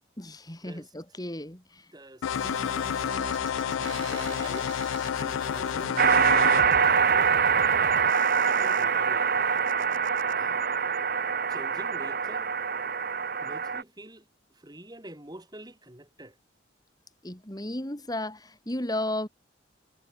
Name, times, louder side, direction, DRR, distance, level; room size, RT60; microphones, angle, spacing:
voice 1, 0.2-1.9 17.2-19.3, left 1 dB, 20° left, 2.8 m, -34 dB
voice 2, 1.9-2.9 3.8-4.8 5.2-6.0 6.9-7.8 8.4-9.3 10.3-10.7 11.5-12.5 13.4-14.3 14.5-16.4, right 1 dB, 20° right, 3.5 m, -46 dB
sound 1, 2.2-6.6, left 8 dB, 90° left, 0.4 m, -30 dB
sound 2, 2.3-10.3, right 4 dB, 75° right, 1.4 m, -43 dB
sound 3, 6.0-13.8, right 6 dB, 50° right, 1.2 m, -24 dB
head